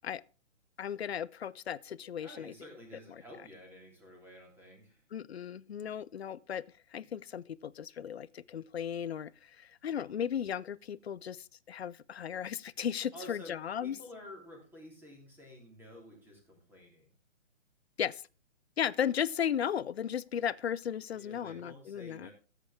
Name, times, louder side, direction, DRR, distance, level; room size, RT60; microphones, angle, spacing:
voice 1, 0.8-2.5 5.1-6.6 6.9-9.3 9.6-14.0 18.0-18.2 18.8-22.3, left 9 dB, 60° left, 0.7 m, -35 dB
voice 2, 2.2-5.0 13.1-17.1 21.1-22.3, left 1 dB, 5° right, 3.1 m, -51 dB
14.5 x 8.2 x 3.6 m
hypercardioid pair, 150°, 37 cm